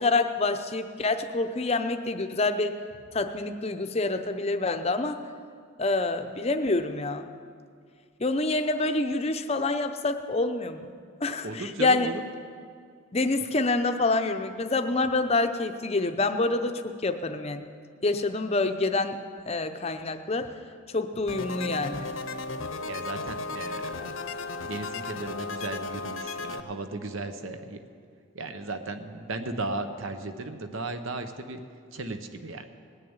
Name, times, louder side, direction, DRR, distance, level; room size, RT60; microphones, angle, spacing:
voice 1, 0.0-2.7 3.1-5.2 5.8-7.3 8.2-10.9 11.2-12.1 13.1-17.7 18.0-20.6 20.9-22.1, left 3 dB, 30° left, 8 dB, 0.6 m, -27 dB
voice 2, 11.4-12.2 22.8-24.3 24.6-27.8 28.3-31.6 31.9-32.6, right 2 dB, 70° right, 8 dB, 0.9 m, -36 dB
sound 1, 21.3-26.6, left 3 dB, 70° left, 0.8 m, -35 dB
19.0 x 6.7 x 8.8 m, 2.2 s
head